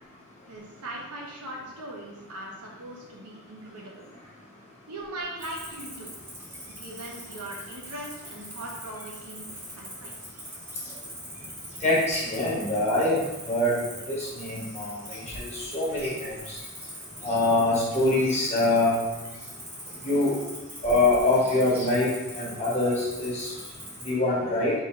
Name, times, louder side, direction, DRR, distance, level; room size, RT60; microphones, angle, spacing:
voice 1, 0.5-4.1 4.9-6.2 6.8-9.5 9.8-10.1, right 1 dB, 85° right, -2 dB, 0.9 m, -40 dB
Cricket, 5.4-24.1, equal, 10° right, 0.8 m, -42 dB
voice 2, 11.8-13.2 13.5-13.7 14.1-16.6 17.2-18.9 20.0-20.3 20.8-22.1 22.3-23.5 24.0-24.7, left 2 dB, 30° left, -6 dB, 1.2 m, -24 dB
3.5 x 2.6 x 4.4 m, 1.1 s
head